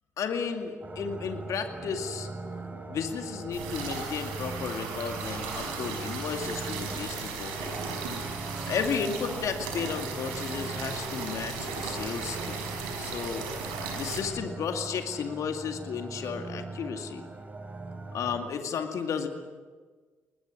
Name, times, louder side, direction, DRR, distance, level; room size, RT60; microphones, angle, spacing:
voice 1, 0.2-2.3 2.9-7.8 8.7-13.5 14.0-17.3 18.1-19.3, left 6 dB, 60° left, 5 dB, 2.3 m, -33 dB
sound 1, 0.8-18.4, right 3 dB, 25° right, 3.8 m, -40 dB
sound 2, 3.5-14.2, right 4 dB, 80° right, 4.9 m, -36 dB
22.5 x 20.0 x 9.6 m, 1.4 s
hypercardioid pair, 45°, 6 cm